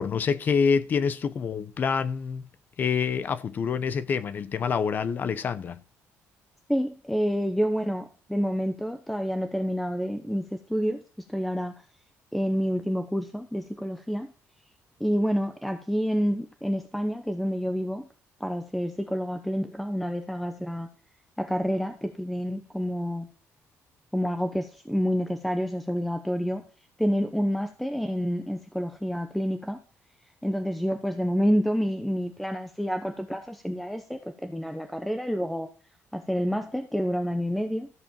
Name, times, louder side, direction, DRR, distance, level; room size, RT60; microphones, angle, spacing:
voice 1, 0.0-2.5 2.8-5.8, left 6 dB, 35° left, 0.7 m, -26 dB
voice 2, 6.7-11.0 11.3-11.7 12.3-14.3 15.0-18.1 18.4-20.9 21.4-23.3 24.1-26.6 27.0-29.8 30.4-35.7 36.1-37.9, equal, ahead, 0.7 m, -28 dB
14.0 x 5.0 x 7.2 m
cardioid pair, 175°, 5 cm